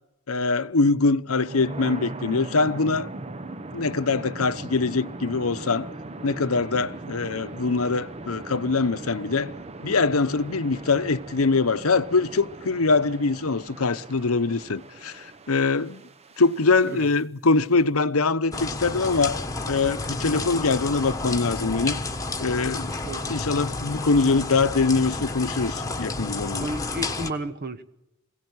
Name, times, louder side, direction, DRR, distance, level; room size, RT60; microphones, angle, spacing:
voice 1, 0.3-3.1 3.7-5.9 6.2-9.5 9.8-16.0 16.4-19.4 19.7-22.0 22.4-22.9 23.3-26.7, left 3 dB, 90° left, 0.9 m, -23 dB
sound 1, 1.2-17.2, right 2 dB, 30° right, 0.9 m, -39 dB
sound 2, 18.5-27.3, left 3 dB, 15° left, 1.4 m, -31 dB
voice 2, 26.6-27.8, right 1 dB, 50° right, 1.3 m, -32 dB
23.0 x 17.0 x 9.6 m
head